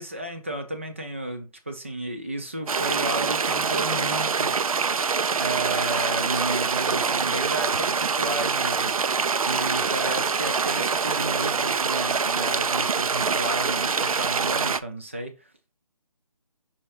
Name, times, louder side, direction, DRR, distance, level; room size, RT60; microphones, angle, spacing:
voice 1, 0.0-4.5 5.3-9.1 9.4-15.7, right 1 dB, 20° right, 0.6 m, -33 dB
sound 1, 2.7-14.8, right 5 dB, 70° right, 0.5 m, -25 dB
5.6 x 3.6 x 4.7 m
hypercardioid pair, 175°, 19 cm